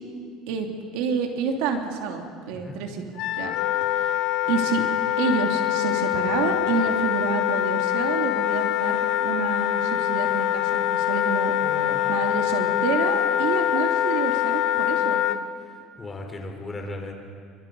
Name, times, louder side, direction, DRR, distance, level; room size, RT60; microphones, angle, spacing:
voice 1, 0.9-3.1 3.4-3.5 3.9-4.1 4.5-4.8 5.2-11.5 12.1-15.2, right 5 dB, 80° right, 3 dB, 2.7 m, -28 dB
Wind instrument woodwind instrument, 3.2-15.4, left 12 dB, 65° left, 1.0 m, -24 dB
voice 2, 11.6-12.3 16.0-17.1, left 2 dB, 20° left, 2 dB, 4.1 m, -36 dB
28.5 x 25.0 x 5.4 m, 2.2 s
cardioid pair, 130°, 0 cm